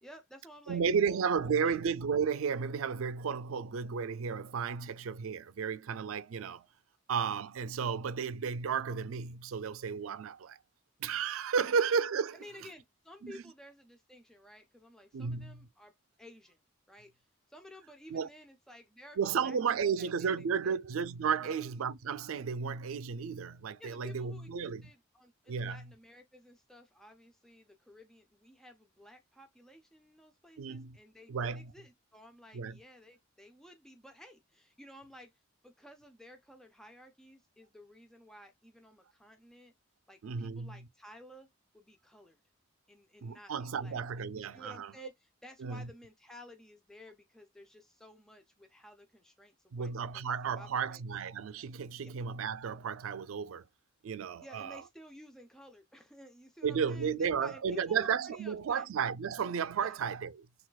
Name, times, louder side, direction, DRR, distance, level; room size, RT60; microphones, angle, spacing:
voice 1, 0.0-1.3 1.6-1.8 11.6-11.7 12.3-16.6 16.9-19.6 19.8-20.3 20.6-20.8 21.4-21.6 23.8-35.3 35.6-39.7 40.1-41.5 41.7-42.4 42.9-44.0 44.3-51.0 52.0-52.1 54.4-58.9 59.8-60.0, left 1 dB, 5° left, 0.4 m, -54 dB
voice 2, 0.7-6.7 7.1-10.6 11.0-12.3 13.2-13.3 15.1-15.7 18.1-18.3 19.2-24.8 25.5-25.9 30.6-31.0 31.3-31.7 32.5-32.8 40.2-40.8 43.2-44.9 45.6-45.9 49.7-53.7 54.0-54.8 56.6-60.5, right 6 dB, 85° right, 0.4 m, -33 dB
6.1 x 2.3 x 2.3 m
head